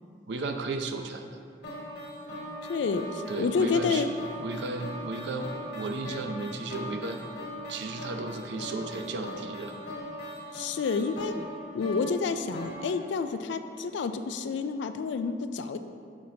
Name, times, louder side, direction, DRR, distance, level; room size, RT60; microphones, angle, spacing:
voice 1, 0.3-1.4 3.3-4.0 4.4-7.2 7.7-9.7, right 3 dB, 75° right, 6 dB, 0.5 m, -34 dB
sound 1, 1.6-13.8, equal, 65° left, 1.3 m, -40 dB
voice 2, 2.7-4.1 10.5-11.3 11.7-15.8, left 5 dB, 80° left, 9 dB, 0.3 m, -29 dB
6.3 x 5.8 x 2.7 m, 2.2 s
head